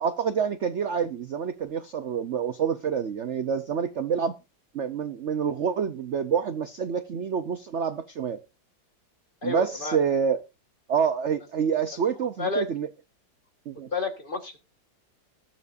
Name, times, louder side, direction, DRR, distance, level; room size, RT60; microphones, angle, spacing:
voice 1, 0.0-4.4 4.7-8.4 9.4-10.4 10.9-12.9 13.7-13.9, right 7 dB, 55° right, 10 dB, 0.8 m, -27 dB
voice 2, 9.4-10.0 12.4-12.7 13.9-14.6, left 3 dB, 30° left, 5 dB, 1.6 m, -30 dB
20.5 x 7.2 x 2.6 m, 0.27 s
omnidirectional pair, 2.1 m